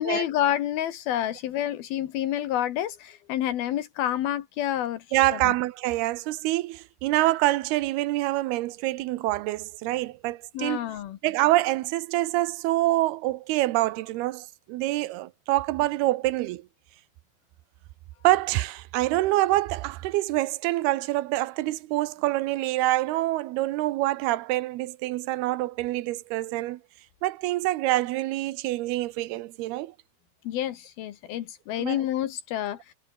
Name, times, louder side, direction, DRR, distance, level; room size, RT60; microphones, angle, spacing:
voice 1, 0.0-5.5 10.5-11.2 30.4-32.9, left 12 dB, 75° left, 3.2 m, -29 dB
voice 2, 5.1-10.8 11.2-16.7 18.2-26.8 27.2-29.9 31.8-32.0, right 17 dB, 85° right, 2.9 m, -26 dB
omnidirectional pair, 4.4 m